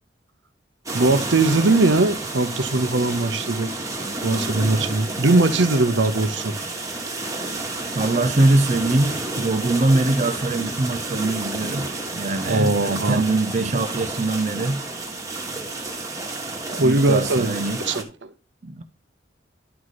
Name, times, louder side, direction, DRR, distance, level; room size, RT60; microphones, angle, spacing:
sound 1, 0.9-18.0, right 2 dB, 15° right, 1.3 m, -30 dB
voice 1, 0.9-3.7 4.2-6.6 12.5-13.2 16.7-17.5 17.9-18.3, right 2 dB, 75° right, 0.8 m, -20 dB
voice 2, 7.9-11.9 12.1-14.8 16.8-17.8 18.6-18.8, right 2 dB, 35° right, 0.5 m, -22 dB
11.0 x 4.8 x 4.1 m
head